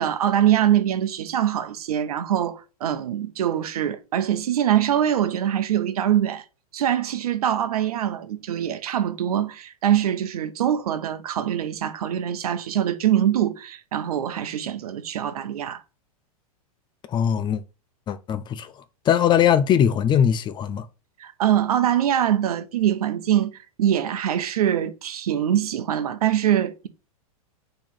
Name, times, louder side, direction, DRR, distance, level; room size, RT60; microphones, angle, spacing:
voice 1, 0.0-6.4 6.7-15.8 21.2-26.9, right 10 dB, 75° right, 0.8 m, -23 dB
voice 2, 17.1-17.6 18.1-18.7 19.1-20.9, left 9 dB, 25° left, 0.4 m, -20 dB
4.3 x 3.3 x 3.7 m
hypercardioid pair, 110°, 19 cm